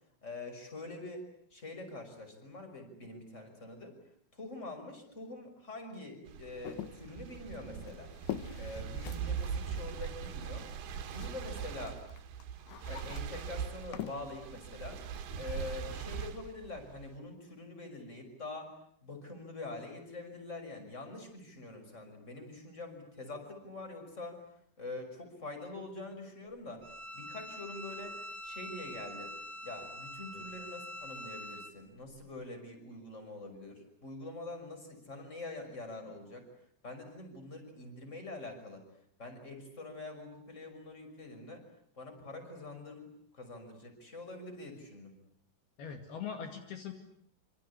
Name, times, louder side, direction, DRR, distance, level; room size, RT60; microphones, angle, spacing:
voice 1, 0.2-4.0 4.3-8.1 8.6-10.7 11.1-12.0 12.9-15.0 15.3-18.7 19.0-24.4 24.8-26.9 27.1-28.2 28.4-29.3 29.6-36.5 36.8-38.8 39.2-41.6 42.0-43.1 43.3-45.1, left 2 dB, 15° left, 6 dB, 5.8 m, -45 dB
sound 1, 6.3-17.2, right 7 dB, 70° right, 3.4 m, -41 dB
sound 2, 6.6-11.6 11.8-15.8, left 12 dB, 80° left, 3.5 m, -46 dB
Bowed string instrument, 26.8-31.7, left 1 dB, 25° right, 1.3 m, -45 dB
voice 2, 45.8-46.9, left 7 dB, 65° left, 5 dB, 4.1 m, -41 dB
27.0 x 26.5 x 8.3 m, 0.67 s
omnidirectional pair, 5.0 m